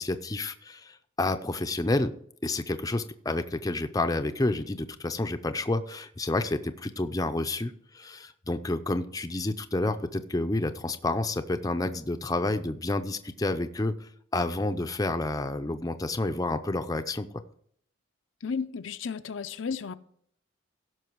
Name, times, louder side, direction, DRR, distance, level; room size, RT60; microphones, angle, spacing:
voice 1, 0.0-2.1 2.4-17.3, left 2 dB, 20° left, 0.5 m, -29 dB
voice 2, 18.4-19.9, left 5 dB, 70° left, 0.5 m, -33 dB
16.0 x 6.1 x 4.6 m
head